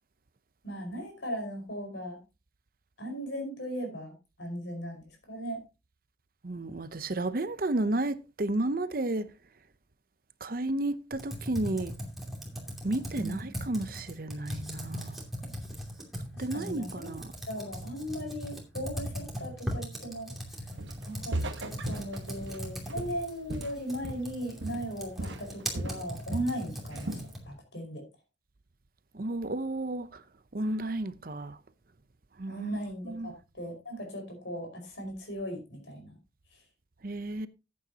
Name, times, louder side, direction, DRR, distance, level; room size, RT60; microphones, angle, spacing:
voice 1, 0.6-2.2 3.0-5.6 13.2-13.4 16.3-17.2 17.5-20.3 21.0-27.2 27.5-28.0 32.5-36.2, equal, 75° left, 5.1 m, -37 dB
voice 2, 6.4-9.3 10.4-11.9 12.8-15.2 16.4-17.3 29.1-30.2 30.5-31.6 32.4-33.3 37.0-37.5, right 2 dB, 50° right, 0.7 m, -32 dB
Computer keyboard, 11.1-27.5, equal, ahead, 2.6 m, -39 dB
Walk footsteps, 20.8-21.1 21.3-24.4 24.6-24.9 25.2-26.6 26.9-27.3, right 1 dB, 75° right, 1.3 m, -37 dB
14.0 x 8.7 x 2.9 m
head